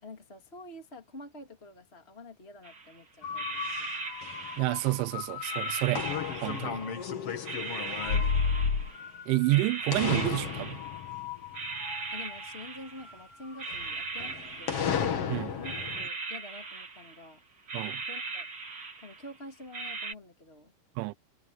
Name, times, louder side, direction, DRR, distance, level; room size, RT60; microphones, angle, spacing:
voice 1, 0.0-3.9 12.1-14.9 15.3-17.4 18.1-18.5 19.0-20.7, left 2 dB, 20° left, 1.8 m, -48 dB
sound 1, 2.6-2.9 3.3-5.0 5.4-7.0 7.4-9.1 9.5-11.2 11.5-13.2 13.6-15.3 15.6-17.3 17.7-19.3 19.7-20.1, right 4 dB, 35° right, 2.0 m, -39 dB
sound 2, 3.2-9.7 9.9-12.4 12.9-16.1, left 6 dB, 80° left, 1.3 m, -33 dB
voice 2, 4.6-6.0 6.4-6.8 9.3-10.8 15.3-15.5 17.7-18.0 21.0-21.1, right 21 dB, 80° right, 3.0 m, -29 dB
omnidirectional pair, 5.8 m